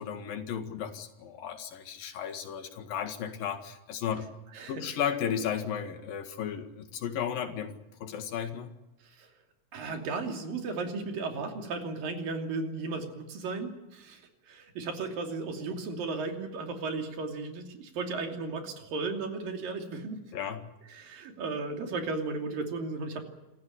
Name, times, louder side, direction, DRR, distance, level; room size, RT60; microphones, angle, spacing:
voice 1, 0.0-4.3 4.7-7.7 8.0-8.7 20.3-20.6, left 8 dB, 90° left, 7 dB, 3.7 m, -34 dB
voice 2, 4.5-4.8 9.0-9.3 9.7-20.2 20.9-23.2, right 3 dB, 90° right, 4 dB, 4.6 m, -35 dB
27.0 x 15.0 x 9.9 m, 1.0 s
omnidirectional pair, 3.9 m